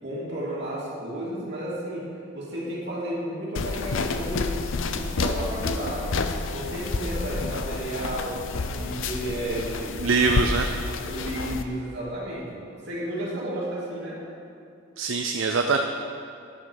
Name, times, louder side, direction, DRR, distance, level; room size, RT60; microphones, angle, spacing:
voice 1, 0.0-6.2 6.5-10.0 11.1-14.2, right 1 dB, 55° right, -6 dB, 2.9 m, -33 dB
sound 1, 3.6-11.6, left 3 dB, 70° left, 0.6 m, -29 dB
voice 2, 10.0-10.7 15.0-15.8, right 4 dB, 75° right, 4 dB, 0.5 m, -23 dB
10.5 x 6.2 x 6.4 m, 2.6 s
head